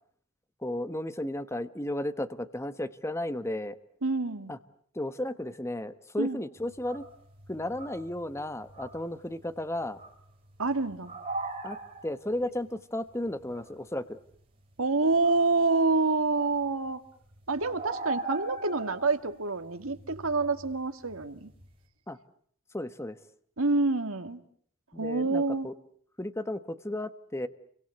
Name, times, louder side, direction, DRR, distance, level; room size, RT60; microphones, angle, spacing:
voice 1, 0.6-3.8 4.5-4.6 4.9-7.0 7.5-10.0 11.6-11.8 12.0-14.2 22.1-22.2 22.7-23.2 24.9-25.7 26.2-27.5, left 1 dB, 10° left, 11 dB, 1.1 m, -34 dB
voice 2, 4.0-4.5 6.2-6.4 10.6-11.1 14.8-17.0 17.5-21.5 23.6-24.4 25.0-25.7, right 3 dB, 75° right, 9 dB, 2.0 m, -27 dB
sound 1, 6.6-16.0 16.3-21.8, right 2 dB, 25° right, 7.5 m, -41 dB
30.0 x 24.0 x 8.0 m, 0.62 s
head